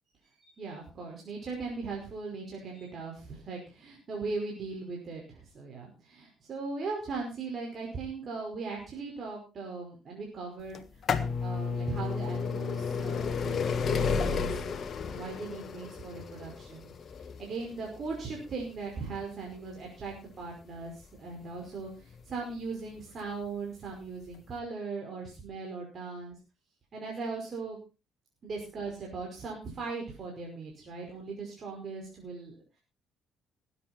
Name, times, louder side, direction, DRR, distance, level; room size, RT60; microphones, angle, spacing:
voice 1, 0.4-10.8 11.4-14.6 15.0-26.4 26.9-27.8 28.4-32.8, right 4 dB, 50° right, -1 dB, 5.5 m, -39 dB
sound 1, 10.7-22.4 23.2-23.3 24.3-24.4 24.6-24.7, left 5 dB, 45° left, 1.6 m, -33 dB
19.0 x 9.9 x 4.5 m, 0.31 s
hypercardioid pair, 50°, 0 cm